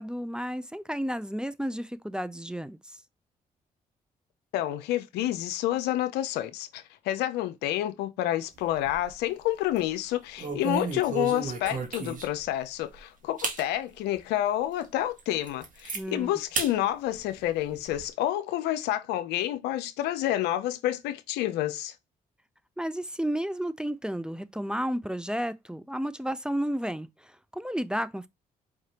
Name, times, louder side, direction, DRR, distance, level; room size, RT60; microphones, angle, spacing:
voice 1, 0.0-2.8 15.9-16.3 22.8-28.3, equal, 5° right, 0.4 m, -32 dB
voice 2, 4.5-21.9, left 13 dB, 85° left, 0.5 m, -29 dB
sound 1, 8.6-9.3 9.6-9.9 10.4-12.5 12.9-13.0 13.4-13.6 14.2-14.3 14.8-14.9 15.2-16.0 16.5-16.7 17.1-18.0, right 4 dB, 55° right, 1.4 m, -34 dB
4.8 x 3.2 x 2.8 m
supercardioid pair, 55°, 17 cm